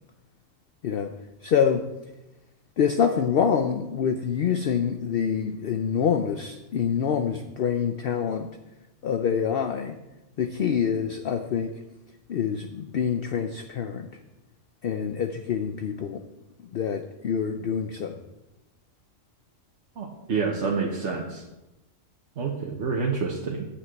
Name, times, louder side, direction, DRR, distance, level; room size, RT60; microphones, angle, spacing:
voice 1, 1.4-1.8 2.8-8.5 9.0-10.0 10.4-11.7 12.3-14.1 14.8-16.2 16.7-18.1, left 7 dB, 55° left, 7 dB, 0.7 m, -26 dB
voice 2, 20.0-21.4 22.4-23.6, right 5 dB, 60° right, -1 dB, 1.3 m, -28 dB
8.2 x 6.2 x 8.0 m, 0.99 s
omnidirectional pair, 1.4 m